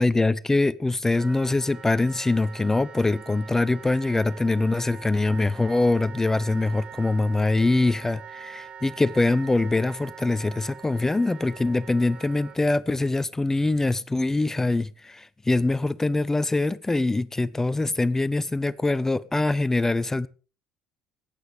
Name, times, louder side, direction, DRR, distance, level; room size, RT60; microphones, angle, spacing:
voice 1, 0.0-20.3, left 2 dB, 15° left, 0.6 m, -23 dB
Wind instrument woodwind instrument, 1.1-12.6, right 7 dB, 35° right, 1.6 m, -43 dB
15.5 x 10.0 x 5.0 m
figure-of-eight pair, 55°, 3 cm